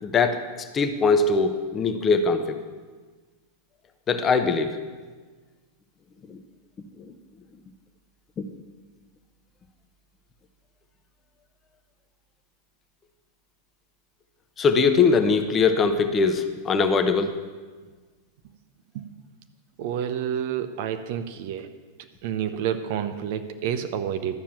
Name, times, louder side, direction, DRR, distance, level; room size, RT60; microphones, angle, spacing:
voice 1, 0.0-2.6 4.1-4.8 6.3-6.4 8.4-8.5 14.6-17.4, left 4 dB, 25° left, 8 dB, 1.0 m, -22 dB
voice 2, 19.8-21.7 22.2-24.3, right 9 dB, 50° right, 9 dB, 0.8 m, -29 dB
12.5 x 7.2 x 7.3 m, 1.4 s
figure-of-eight pair, 90°, 0 cm